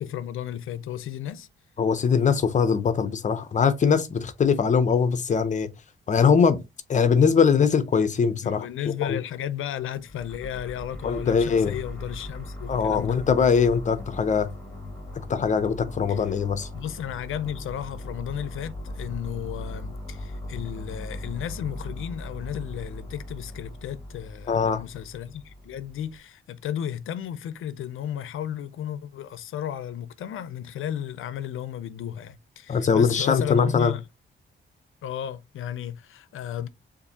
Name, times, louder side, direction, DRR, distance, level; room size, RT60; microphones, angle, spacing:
voice 1, 0.0-1.5 8.4-13.2 16.1-16.2 16.7-34.0 35.0-36.7, left 10 dB, 80° left, 0.5 m, -34 dB
voice 2, 1.8-5.7 6.1-6.6 6.9-8.7 9.1-9.2 11.0-11.7 12.7-14.5 15.3-16.7 24.5-24.8 32.7-33.9, left 6 dB, 35° left, 0.6 m, -21 dB
sound 1, 10.0-26.2, left 1 dB, 5° left, 1.6 m, -39 dB
6.8 x 2.6 x 2.8 m
wide cardioid pair, 175°, 21 cm